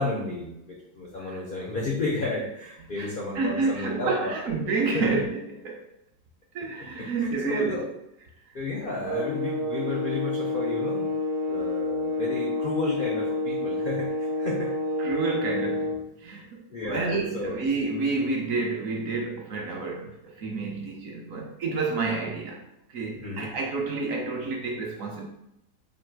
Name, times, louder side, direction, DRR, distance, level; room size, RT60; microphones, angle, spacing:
voice 1, 0.0-4.5 4.9-5.2 7.0-7.9 8.5-11.1 11.5-14.7 16.7-17.6 23.1-23.5, left 2 dB, 80° left, -3 dB, 0.4 m, -32 dB
voice 2, 3.0-5.9 6.5-7.8 8.5-8.6 15.0-25.3, right 4 dB, 65° right, 0 dB, 0.9 m, -29 dB
sound 1, 9.0-16.1, left 2 dB, 50° right, 0.5 m, -29 dB
3.1 x 2.6 x 4.5 m, 0.81 s
omnidirectional pair, 1.8 m